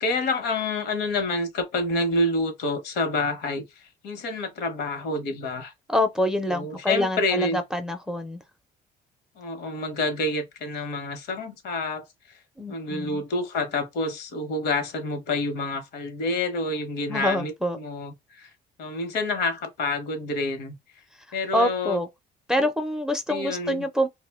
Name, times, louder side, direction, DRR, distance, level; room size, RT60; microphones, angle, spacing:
voice 1, 0.0-5.7 6.5-7.6 9.4-12.0 12.7-18.5 18.8-20.7 21.3-22.0 22.6-22.7 23.3-23.8, left 2 dB, 75° left, 0.9 m, -28 dB
voice 2, 5.9-8.4 12.6-13.2 17.1-17.8 21.5-22.1 22.5-24.1, left 1 dB, 5° right, 0.4 m, -26 dB
2.3 x 2.1 x 3.4 m
cardioid pair, 110°, 17 cm